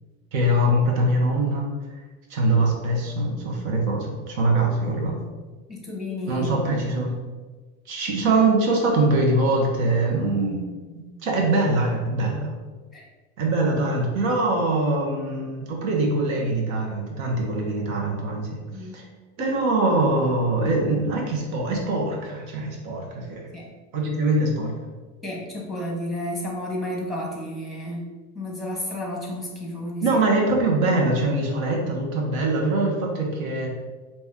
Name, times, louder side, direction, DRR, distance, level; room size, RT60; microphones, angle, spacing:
voice 1, 0.3-1.6 2.3-5.1 6.3-7.1 7.9-10.6 10.9-12.5 13.4-18.5 18.9-19.0 19.4-23.5 23.9-24.7 30.0-33.7, right 2 dB, 75° right, -1 dB, 1.3 m, -23 dB
voice 2, 5.7-6.5 12.9-13.1 18.7-19.0 23.2-23.6 25.2-30.2, left 1 dB, ahead, -2 dB, 0.9 m, -32 dB
4.3 x 3.0 x 3.6 m, 1.3 s
supercardioid pair, 140°, 41 cm